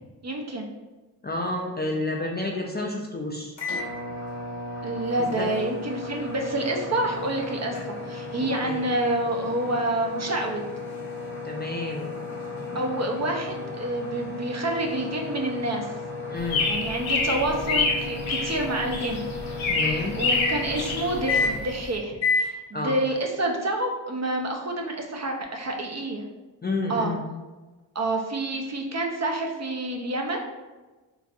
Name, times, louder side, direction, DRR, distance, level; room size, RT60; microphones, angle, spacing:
voice 1, 0.2-0.7 4.8-10.6 12.7-15.9 16.7-19.2 19.9-26.2 26.9-27.1 27.9-30.5, right 1 dB, 35° right, 2 dB, 0.5 m, -28 dB
voice 2, 1.2-3.6 5.3-5.5 8.6-8.8 11.4-12.2 16.3-16.7 19.7-20.1 22.7-23.0 26.6-27.2, left 2 dB, 25° left, 0 dB, 0.4 m, -30 dB
sound 1, 3.6-21.8 22.2-22.5, left 3 dB, 70° left, 1.2 m, -33 dB
sound 2, 16.4-22.0, left 3 dB, 85° left, 0.7 m, -27 dB
4.0 x 2.4 x 2.3 m, 1.2 s
cardioid pair, 50°, 46 cm